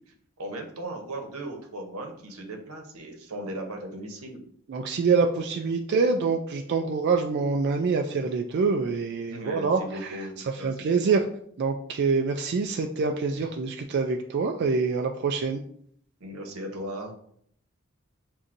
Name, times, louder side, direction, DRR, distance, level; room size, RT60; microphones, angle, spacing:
voice 1, 0.4-4.4 9.2-11.2 13.4-13.5 16.2-17.1, right 1 dB, 90° right, 3 dB, 0.9 m, -37 dB
voice 2, 4.7-10.2 10.6-11.3 11.6-15.6, right 4 dB, 50° right, 3 dB, 0.3 m, -25 dB
7.2 x 2.6 x 2.5 m, 0.64 s
head